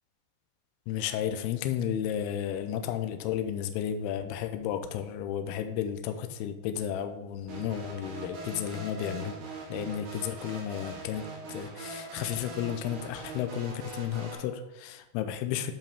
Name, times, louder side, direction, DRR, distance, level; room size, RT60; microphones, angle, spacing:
voice 1, 0.9-9.4 9.7-15.7, left 10 dB, 85° left, 8 dB, 2.4 m, -33 dB
sound 1, 7.5-14.3, right 3 dB, 65° right, 3.7 m, -42 dB
10.5 x 5.0 x 3.5 m, 0.97 s
omnidirectional pair, 5.1 m